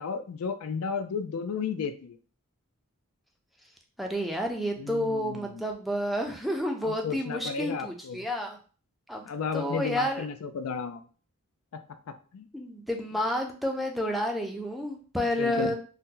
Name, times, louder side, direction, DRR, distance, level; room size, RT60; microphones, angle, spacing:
voice 1, 0.0-2.2 4.8-5.6 6.8-8.3 9.2-11.0 11.7-11.8 12.3-12.5 15.4-15.7, left 5 dB, 80° left, 9 dB, 0.4 m, -33 dB
voice 2, 4.0-8.6 9.1-9.3 9.5-10.3 12.5-15.7, equal, ahead, 1 dB, 0.4 m, -30 dB
2.8 x 2.1 x 3.6 m, 0.40 s
head